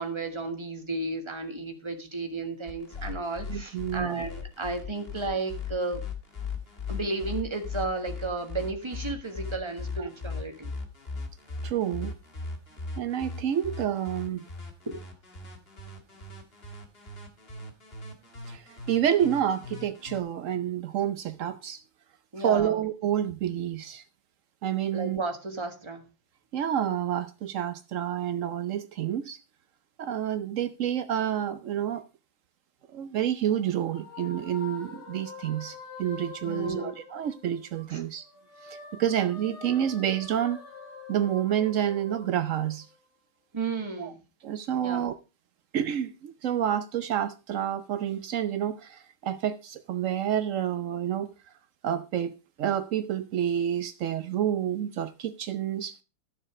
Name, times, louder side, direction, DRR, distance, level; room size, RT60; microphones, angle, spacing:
voice 1, 0.0-6.0 6.9-10.7 14.8-15.0 22.3-22.8 24.9-26.0 36.4-37.0 37.9-38.0 43.5-44.2 44.8-45.0, right 3 dB, 15° right, 1.4 m, -33 dB
sound 1, 2.7-20.2, left 4 dB, 30° left, 1.9 m, -38 dB
voice 2, 3.5-4.2 10.0-10.1 11.6-12.1 13.0-14.4 18.5-21.8 22.4-24.0 24.6-25.2 26.5-29.4 30.0-32.0 32.9-38.3 38.6-40.6 41.1-42.9 44.0-44.1 44.4-45.1 45.7-51.3 51.8-52.3 52.6-55.9, right 10 dB, 85° right, 0.7 m, -29 dB
sound 2, 32.8-37.8 38.2-42.9, left 4 dB, 55° left, 3.5 m, -46 dB
13.0 x 6.8 x 4.9 m
omnidirectional pair, 2.2 m